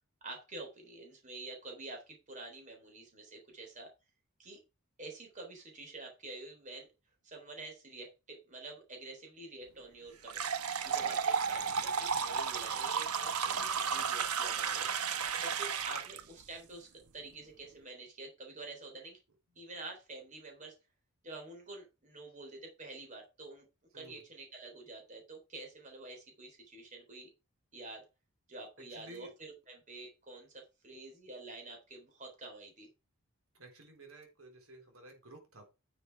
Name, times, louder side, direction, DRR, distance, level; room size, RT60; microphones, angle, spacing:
voice 1, 0.2-3.9 4.4-4.6 5.0-6.9 7.2-10.5 10.8-14.9 15.4-19.2 19.6-20.8 21.2-23.7 23.9-27.3 27.7-28.0 28.5-32.9, right 2 dB, 35° right, 2 dB, 3.7 m, -48 dB
sound 1, 10.3-16.2, right 6 dB, 85° right, 1.1 m, -33 dB
voice 2, 28.9-29.3 33.6-35.6, right 1 dB, 70° right, 3 dB, 3.8 m, -53 dB
10.0 x 6.7 x 4.7 m, 0.27 s
head